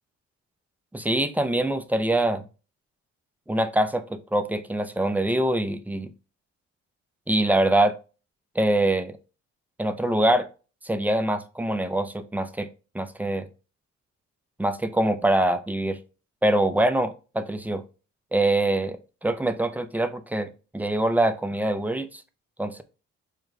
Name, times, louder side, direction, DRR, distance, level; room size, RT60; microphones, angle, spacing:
voice 1, 0.9-2.4 3.5-6.1 7.3-8.0 8.6-9.2 9.8-10.5 10.8-12.7 12.9-13.5 14.6-16.0 16.4-17.8 18.3-22.2 22.6-22.8, right 1 dB, 5° right, 9 dB, 0.4 m, -24 dB
4.9 x 2.2 x 3.5 m, 0.33 s
cardioid pair, 90°, 30 cm